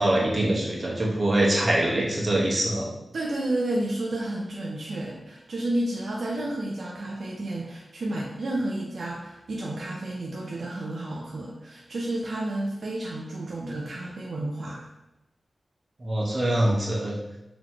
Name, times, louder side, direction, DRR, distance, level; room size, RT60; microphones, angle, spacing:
voice 1, 0.0-2.9 16.0-17.1, right 1 dB, 40° right, -3 dB, 1.0 m, -24 dB
voice 2, 3.1-14.9, right 1 dB, 75° right, -2 dB, 0.5 m, -31 dB
4.0 x 3.0 x 2.9 m, 0.93 s
wide cardioid pair, 105°, 0 cm